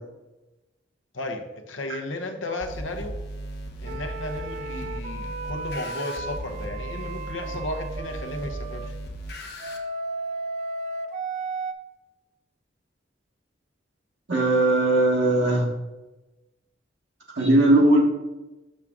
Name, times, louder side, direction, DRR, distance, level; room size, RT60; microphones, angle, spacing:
voice 1, 1.1-3.2 3.8-8.9, left 2 dB, 90° left, 5 dB, 0.9 m, -34 dB
sound 1, 2.6-9.8, right 1 dB, 60° left, 1.0 m, -36 dB
sound 2, 3.9-8.9 9.6-11.7, right 2 dB, 40° right, 0.4 m, -34 dB
voice 2, 14.3-15.7 17.4-18.0, right 1 dB, 70° right, -2 dB, 1.2 m, -19 dB
6.5 x 5.9 x 3.6 m, 1.1 s
head